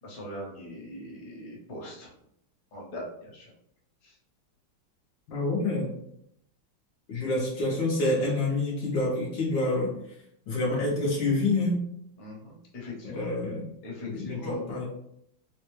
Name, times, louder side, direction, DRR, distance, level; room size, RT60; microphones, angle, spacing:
voice 1, 0.0-2.1 2.7-3.5 4.0-4.1 12.2-13.3 13.8-14.6, left 1 dB, 50° left, -4 dB, 1.4 m, -41 dB
voice 2, 5.3-5.9 7.1-9.9 10.5-11.8 13.0-13.7 14.0-14.9, left 2 dB, 70° left, -4 dB, 1.5 m, -27 dB
4.3 x 2.2 x 3.0 m, 0.74 s
omnidirectional pair, 2.2 m